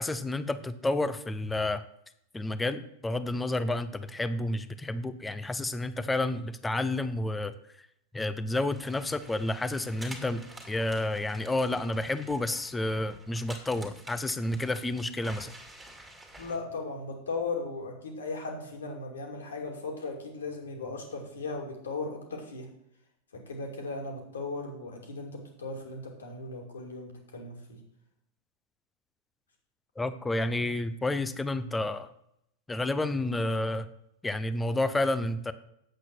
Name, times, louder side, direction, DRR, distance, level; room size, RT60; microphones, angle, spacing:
voice 1, 0.0-1.8 2.3-7.9 8.1-15.5 30.0-32.1 32.7-33.9 34.2-35.5, left 2 dB, 10° left, 13 dB, 0.7 m, -30 dB
sound 1, 8.7-16.6, right 1 dB, 5° right, 2.3 m, -49 dB
voice 2, 16.4-22.7 23.3-27.8, left 3 dB, 65° left, 2 dB, 2.5 m, -37 dB
9.0 x 8.1 x 6.0 m, 0.77 s
figure-of-eight pair, 90°, 0 cm